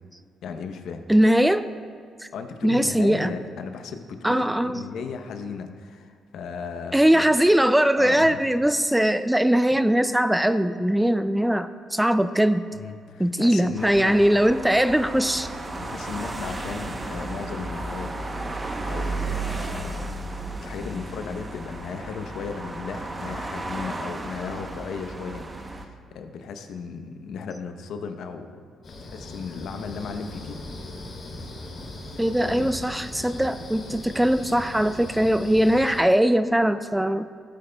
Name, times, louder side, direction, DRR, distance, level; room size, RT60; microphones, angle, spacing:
voice 1, 0.4-1.0 2.3-7.4 8.0-8.4 12.7-14.2 15.8-18.1 18.8-20.1 20.6-25.5 25.7-28.6 29.0-30.6 32.4-32.7, left 5 dB, 75° left, 7 dB, 0.8 m, -35 dB
voice 2, 1.1-1.7 2.6-3.3 4.2-4.8 6.9-12.7 13.2-15.5 32.2-37.3, right 1 dB, 5° right, 12 dB, 0.3 m, -21 dB
sound 1, 13.8-25.9, right 2 dB, 25° right, 0.8 m, -33 dB
sound 2, 28.8-36.0, left 1 dB, 50° left, 2.4 m, -39 dB
15.5 x 8.8 x 2.3 m, 2.2 s
cardioid pair, 90°, 0 cm